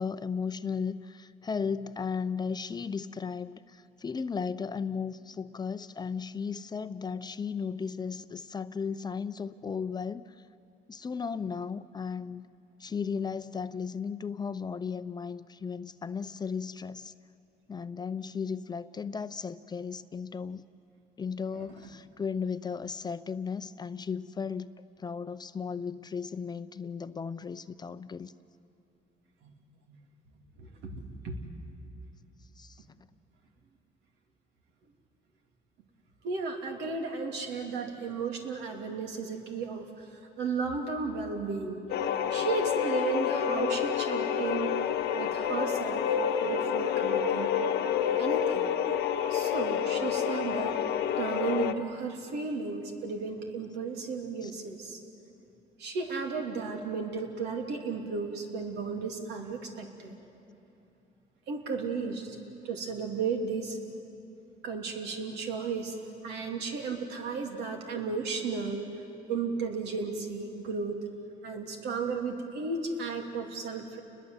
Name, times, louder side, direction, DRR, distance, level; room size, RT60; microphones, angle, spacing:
voice 1, 0.0-10.4 10.9-12.5 12.8-17.1 17.7-20.6 21.2-28.3 32.6-32.8 54.4-54.5, left 6 dB, 25° left, 12 dB, 0.6 m, -35 dB
voice 2, 30.6-31.4 36.2-41.8 42.3-44.7 45.1-46.1 46.4-47.7 48.2-48.7 49.3-50.8 51.2-55.0 55.8-60.1 61.5-62.4 62.6-63.8 64.6-66.0 66.2-68.9 69.3-71.0 71.4-74.0, right 4 dB, 80° right, 3 dB, 3.3 m, -34 dB
sound 1, 41.9-51.7, left 8 dB, 80° left, 1.1 m, -28 dB
29.5 x 21.0 x 8.1 m, 2.9 s
cardioid pair, 110°, 17 cm